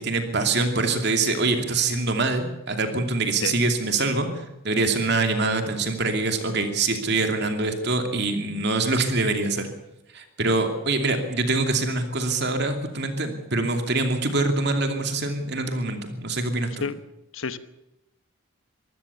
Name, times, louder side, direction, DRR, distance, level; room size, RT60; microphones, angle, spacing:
voice 1, 0.0-9.7 10.1-16.7, right 3 dB, 50° right, 5 dB, 2.7 m, -24 dB
voice 2, 3.4-3.6 16.8-17.0 17.3-17.6, left 5 dB, 70° left, 12 dB, 1.1 m, -29 dB
24.0 x 16.0 x 7.0 m, 0.94 s
head